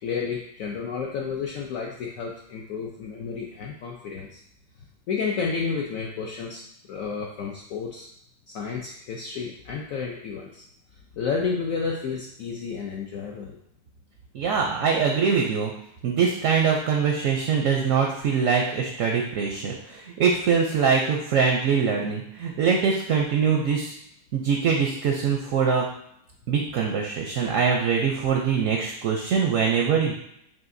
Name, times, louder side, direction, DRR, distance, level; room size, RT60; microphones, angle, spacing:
voice 1, 0.0-4.4 5.1-6.6 6.9-8.1 8.5-10.6 11.1-13.6, left 5 dB, 70° left, -2 dB, 0.8 m, -31 dB
voice 2, 14.3-15.7 16.0-23.9 24.3-25.9 26.5-30.1, right 6 dB, 70° right, 1 dB, 0.8 m, -23 dB
5.6 x 2.6 x 2.6 m, 0.74 s
omnidirectional pair, 1.8 m